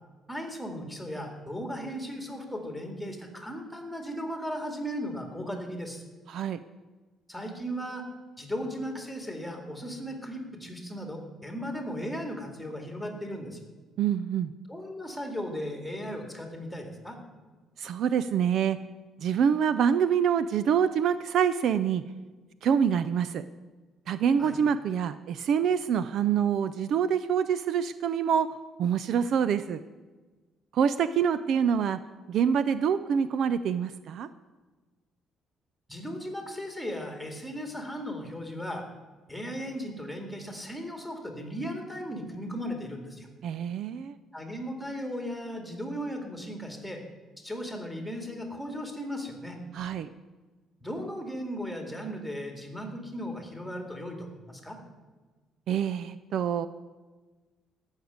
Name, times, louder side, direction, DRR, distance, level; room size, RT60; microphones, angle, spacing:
voice 1, 0.3-6.0 7.3-8.1 8.4-13.6 14.7-17.2 24.4-24.5 35.9-38.9 39.3-43.3 44.3-47.0 47.4-49.6 50.8-54.8, equal, ahead, 3 dB, 2.1 m, -36 dB
voice 2, 6.3-6.6 14.0-14.5 17.8-18.8 19.2-22.0 22.6-23.4 24.1-28.5 28.8-29.8 30.7-32.0 32.3-34.3 43.4-44.2 49.7-50.1 55.7-56.7, right 7 dB, 55° right, 13 dB, 0.4 m, -26 dB
14.0 x 6.5 x 9.4 m, 1.3 s
cardioid pair, 150°, 0 cm